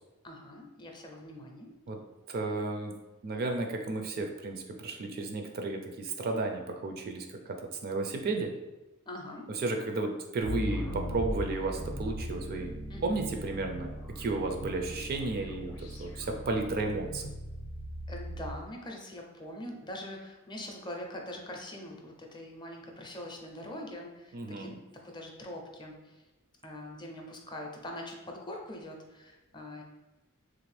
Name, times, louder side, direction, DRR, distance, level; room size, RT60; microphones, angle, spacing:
voice 1, 0.2-1.7 9.1-9.5 12.9-13.2 18.1-24.8 25.0-26.2 26.6-29.8, left 1 dB, 20° left, 1 dB, 0.5 m, -43 dB
voice 2, 2.3-2.9 3.2-8.5 9.6-17.3 24.3-24.8, right 3 dB, 45° right, 4 dB, 0.4 m, -33 dB
sound 1, 10.4-18.6, equal, 90° left, 0.6 m, -38 dB
3.1 x 2.5 x 3.2 m, 1.1 s
head